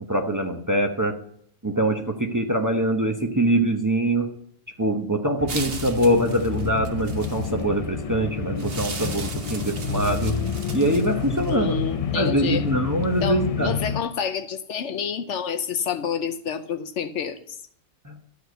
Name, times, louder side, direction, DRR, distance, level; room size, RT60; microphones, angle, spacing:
voice 1, 0.1-1.1 1.6-4.3 4.8-10.3 10.7-11.8 12.1-13.7 18.0-18.2, right 1 dB, 15° right, 3 dB, 0.8 m, -23 dB
sound 1, 5.4-14.0, left 6 dB, 50° left, 0.4 m, -29 dB
sound 2, 5.5-7.6 8.6-11.5, right 4 dB, 50° right, 1.2 m, -37 dB
voice 2, 11.5-12.6 13.2-17.6, left 7 dB, 65° left, 8 dB, 0.9 m, -28 dB
12.5 x 5.0 x 7.9 m, 0.66 s
omnidirectional pair, 1.4 m